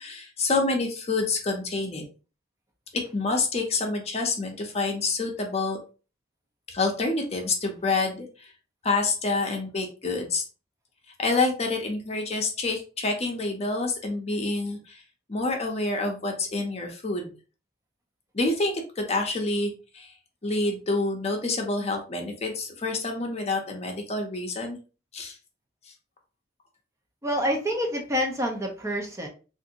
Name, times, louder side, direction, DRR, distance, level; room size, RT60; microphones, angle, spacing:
voice 1, 0.0-2.0 3.1-5.8 6.7-8.5 8.8-10.4 11.2-15.0 15.3-17.3 18.3-20.1 20.4-24.8 25.1-25.3, left 3 dB, 35° left, 2 dB, 0.7 m, -27 dB
voice 2, 27.2-29.3, equal, 15° right, 1 dB, 0.6 m, -27 dB
3.4 x 2.6 x 2.8 m, 0.34 s
head